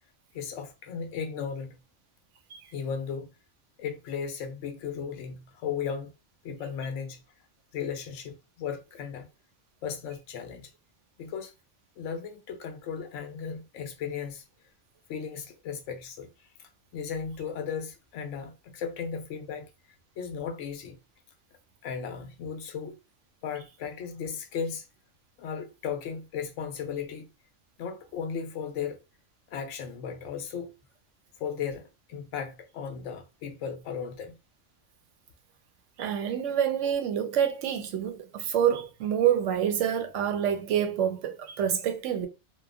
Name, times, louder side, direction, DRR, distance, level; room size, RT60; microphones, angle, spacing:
voice 1, 0.3-1.8 2.7-3.3 3.8-6.1 6.4-7.2 7.7-9.3 9.8-10.7 11.2-11.5 12.0-14.4 15.1-19.7 20.2-21.0 21.8-23.0 23.4-24.9 25.4-27.3 27.8-29.0 29.5-30.7 31.4-34.4, left 7 dB, 80° left, 0.9 m, -36 dB
voice 2, 36.0-42.3, right 9 dB, 80° right, 0.9 m, -27 dB
2.9 x 2.2 x 2.3 m
omnidirectional pair, 1.3 m